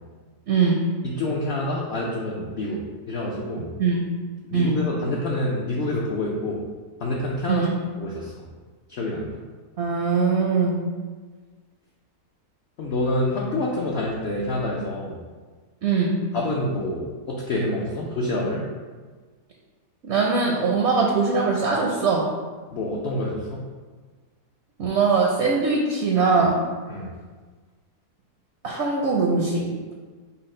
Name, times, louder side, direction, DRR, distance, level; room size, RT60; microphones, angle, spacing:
voice 1, 0.5-0.8 3.8-4.0 4.5-4.8 7.5-7.8 9.8-10.8 15.8-16.1 20.0-22.2 24.8-26.6 28.6-29.6, right 4 dB, 65° right, -1 dB, 0.7 m, -21 dB
voice 2, 1.0-2.8 3.1-3.7 4.5-6.6 7.0-7.7 8.0-8.3 8.9-9.4 12.8-15.2 16.3-18.6 22.7-23.6 26.9-27.1, left 1 dB, 70° left, -3 dB, 0.6 m, -27 dB
5.7 x 2.1 x 4.2 m, 1.4 s
omnidirectional pair, 1.7 m